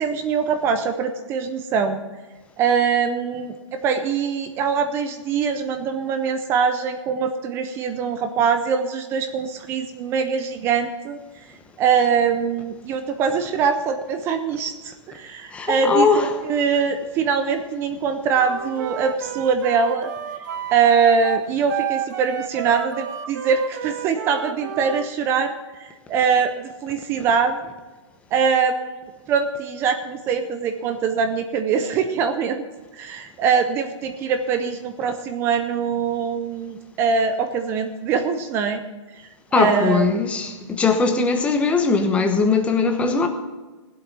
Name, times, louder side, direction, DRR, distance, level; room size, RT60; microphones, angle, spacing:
voice 1, 0.0-2.0 2.6-11.2 11.8-20.1 20.7-25.5 25.8-27.6 28.3-32.6 33.0-38.8 39.5-40.1, right 6 dB, 15° right, 0.4 m, -23 dB
voice 2, 15.5-16.3 39.5-43.3, left 4 dB, 10° left, 0.9 m, -20 dB
Wind instrument woodwind instrument, 18.3-25.1, right 11 dB, 40° right, 0.9 m, -31 dB
16.5 x 8.0 x 6.0 m
hypercardioid pair, 160°, 16 cm